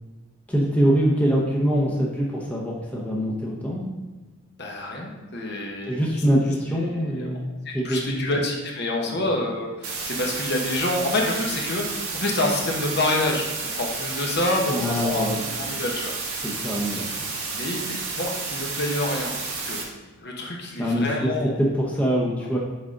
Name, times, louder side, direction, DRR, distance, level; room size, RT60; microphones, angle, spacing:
voice 1, 0.5-3.9 5.8-8.3 9.1-9.2 14.7-15.4 16.4-17.1 20.8-21.3 21.6-22.6, equal, 5° left, -4 dB, 0.8 m, -24 dB
voice 2, 4.6-6.0 6.7-7.4 7.6-16.4 17.5-19.8 20.2-21.5, left 1 dB, 50° left, 0 dB, 1.0 m, -27 dB
sound 1, 9.8-19.8, right 4 dB, 80° right, 1.4 m, -31 dB
6.3 x 4.9 x 3.8 m, 1.2 s
head